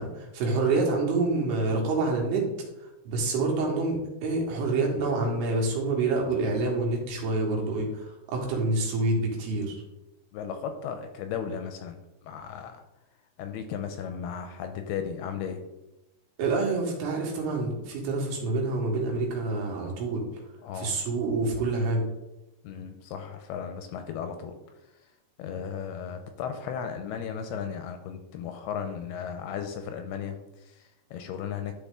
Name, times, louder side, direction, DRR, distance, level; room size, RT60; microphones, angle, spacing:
voice 1, 0.0-2.5 2.8-9.7 16.4-20.2 20.7-22.0, right 3 dB, 75° right, 0 dB, 3.3 m, -27 dB
voice 2, 10.3-12.0 12.2-12.8 13.4-15.6 20.6-21.0 22.6-24.6 25.4-31.7, left 7 dB, 80° left, 7 dB, 2.4 m, -35 dB
11.5 x 4.1 x 3.6 m, 0.97 s
omnidirectional pair, 4.8 m